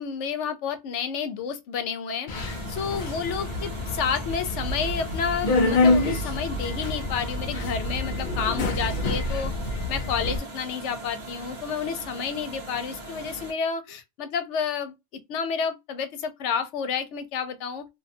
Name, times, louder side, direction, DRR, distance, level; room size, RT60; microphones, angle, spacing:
voice 1, 0.0-2.3 2.7-9.5 9.9-14.9 15.3-17.9, left 6 dB, 85° left, 0.9 m, -30 dB
Subway metro underground, 2.3-10.4, left 2 dB, 50° left, 0.7 m, -27 dB
sound 1, 2.3-13.5, right 2 dB, 40° right, 1.1 m, -41 dB
2.7 x 2.3 x 2.6 m
omnidirectional pair, 1.2 m